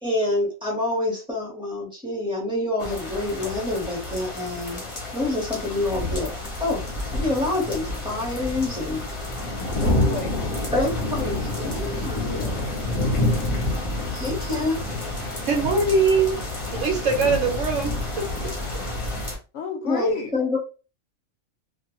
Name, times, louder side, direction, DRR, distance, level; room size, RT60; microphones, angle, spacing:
voice 1, 0.0-4.8 5.1-6.3 6.6-6.8 7.1-9.0 10.7-12.5 14.1-14.8 19.8-20.6, left 2 dB, 5° right, -3 dB, 0.9 m, -27 dB
sound 1, 2.8-19.3, left 1 dB, 30° left, 0.7 m, -28 dB
voice 2, 9.8-10.5 12.2-12.6 19.5-20.3, left 5 dB, 70° left, 4 dB, 0.8 m, -31 dB
voice 3, 15.5-16.4 16.7-17.9, right 4 dB, 65° right, 2 dB, 1.1 m, -21 dB
2.4 x 2.3 x 3.0 m, 0.33 s
omnidirectional pair, 1.4 m